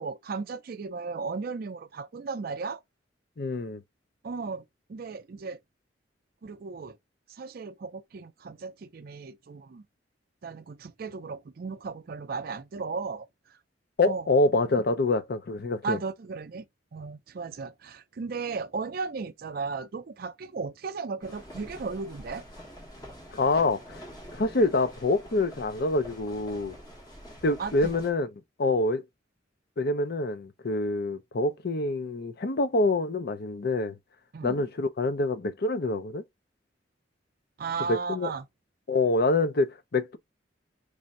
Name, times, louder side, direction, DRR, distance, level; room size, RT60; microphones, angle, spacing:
voice 1, 0.0-2.8 4.2-4.6 4.9-5.6 6.4-7.0 7.3-9.8 10.4-13.6 14.0-14.3 15.8-16.7 16.9-22.5 27.6-27.9 34.3-34.6 37.6-38.5, right 4 dB, 55° right, 0.4 m, -35 dB
voice 2, 3.4-3.8 14.0-16.0 23.3-26.7 27.4-28.3 28.6-29.0 29.8-34.0 34.4-36.2 37.9-38.3 38.9-40.2, left 2 dB, 55° left, 0.6 m, -26 dB
sound 1, 21.2-28.1, equal, 20° left, 1.2 m, -46 dB
3.4 x 2.5 x 4.1 m
head